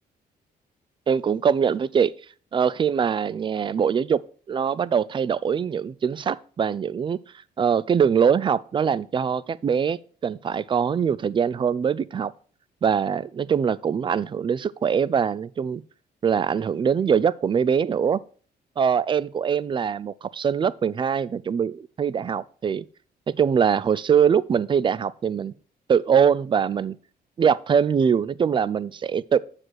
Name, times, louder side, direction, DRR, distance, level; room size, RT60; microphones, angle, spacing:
voice 1, 1.1-2.1 2.5-4.2 4.5-7.2 7.6-10.0 10.2-12.3 12.8-15.8 16.2-18.2 18.8-22.9 23.3-25.5 25.9-27.0 27.4-29.4, right 7 dB, 30° right, 0.4 m, -22 dB
7.6 x 4.9 x 6.3 m
cardioid pair, 130°, 17 cm